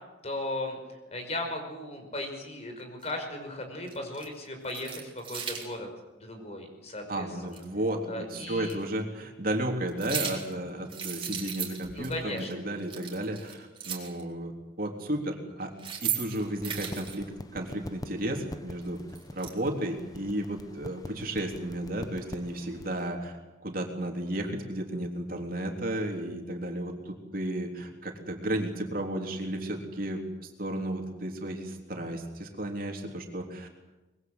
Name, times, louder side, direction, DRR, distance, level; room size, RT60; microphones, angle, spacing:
voice 1, 0.2-0.8 1.1-5.9 6.2-7.6 8.1-8.8 12.0-12.5, left 1 dB, 35° left, 4 dB, 5.4 m, -36 dB
sound 1, 3.0-3.1 3.9-4.3 4.6-5.7 7.5-7.6 8.6-8.7 9.9-10.5 10.9-12.1 12.4-12.5 12.8-14.2 15.6-17.2 18.8-19.5, right 8 dB, 30° right, 4.2 m, -36 dB
voice 2, 7.1-15.7 16.0-17.3 17.5-19.0 19.3-30.3 30.6-33.7, right 1 dB, 50° right, 2 dB, 3.5 m, -33 dB
sound 2, 16.3-23.1, left 1 dB, 20° left, 1.0 m, -45 dB
24.5 x 22.0 x 8.0 m, 1.1 s
head